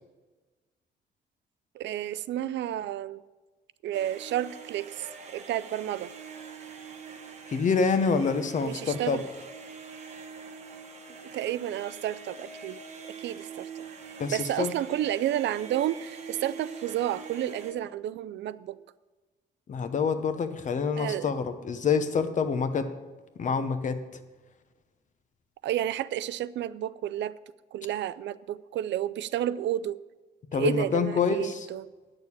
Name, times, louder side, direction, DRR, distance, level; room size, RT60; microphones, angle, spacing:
voice 1, 1.7-3.2 3.8-6.1 8.6-9.2 11.3-12.8 13.2-13.8 14.2-18.8 20.9-21.3 25.6-27.3 27.7-30.0 30.5-31.9, right 12 dB, 85° right, 17 dB, 0.4 m, -31 dB
sound 1, 3.9-17.7, right 5 dB, 40° right, 1.0 m, -44 dB
voice 2, 7.5-9.2 14.2-14.7 19.7-22.9 23.4-24.0 30.5-31.7, left 5 dB, 45° left, 10 dB, 0.8 m, -27 dB
8.8 x 6.4 x 8.5 m, 1.2 s
wide cardioid pair, 160°, 18 cm